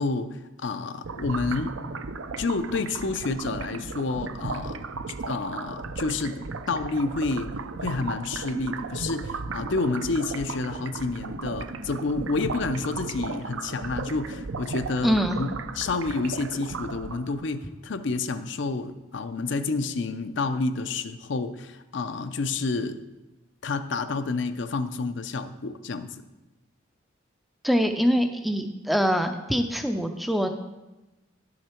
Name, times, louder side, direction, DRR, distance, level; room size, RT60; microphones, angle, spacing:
voice 1, 0.0-1.7 2.4-4.8 5.2-6.4 6.7-7.5 7.8-15.5 15.7-23.0 23.6-26.1, left 3 dB, 60° left, 10 dB, 0.5 m, -29 dB
sound 1, 1.0-17.5, right 4 dB, 75° right, 0.5 m, -35 dB
voice 2, 15.0-15.4 27.6-30.5, equal, ahead, 6 dB, 0.4 m, -24 dB
11.0 x 6.5 x 4.4 m, 1.0 s
head